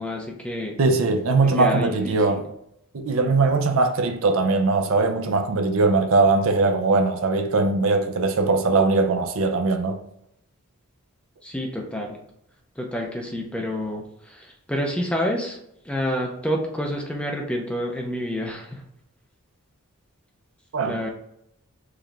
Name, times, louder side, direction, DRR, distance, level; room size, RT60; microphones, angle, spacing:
voice 1, 0.0-0.8 1.6-2.4 11.4-12.2 12.8-15.6 15.8-18.8 20.8-21.1, equal, 5° left, 0.5 m, -28 dB
voice 2, 0.8-2.5 2.9-10.0 20.7-21.1, right 3 dB, 65° right, 0.5 m, -21 dB
4.8 x 2.3 x 3.2 m
head